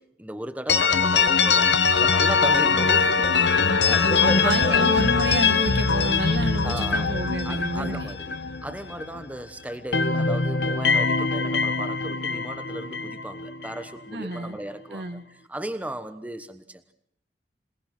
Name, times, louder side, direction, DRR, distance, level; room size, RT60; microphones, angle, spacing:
voice 1, 0.0-4.8 6.6-7.1 7.4-8.4 8.6-16.9, right 1 dB, 10° right, 10 dB, 1.2 m, -35 dB
sound 1, 0.7-9.4 9.7-13.8, left 5 dB, 85° left, 1.4 m, -22 dB
voice 2, 4.4-8.1 14.1-14.6 14.9-15.2, right 1 dB, 80° right, 10 dB, 1.7 m, -30 dB
27.5 x 19.5 x 6.1 m, 0.71 s
head